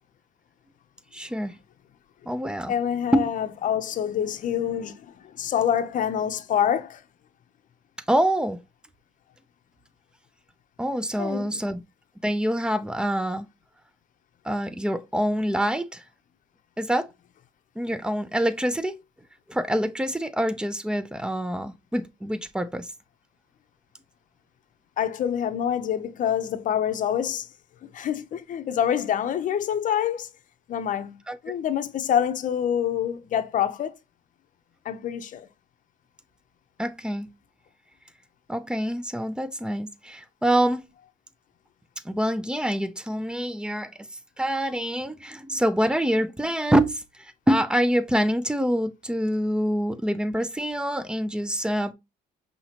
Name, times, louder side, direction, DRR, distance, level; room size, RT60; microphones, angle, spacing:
voice 1, 1.1-1.6 2.3-2.7 3.1-3.3 8.1-8.6 10.8-11.8 12.2-13.5 14.4-16.0 16.8-17.1 17.8-19.0 19.5-22.9 31.3-31.4 36.8-37.3 38.5-40.8 42.0-43.9 44.4-51.9, equal, 5° right, 0.4 m, -26 dB
voice 2, 2.7-7.0 11.2-11.6 25.0-27.5 27.9-30.3 30.7-31.2 31.4-34.0 34.8-35.5, left 9 dB, 50° left, 0.7 m, -26 dB
5.7 x 2.9 x 2.9 m
cardioid pair, 110°, 17 cm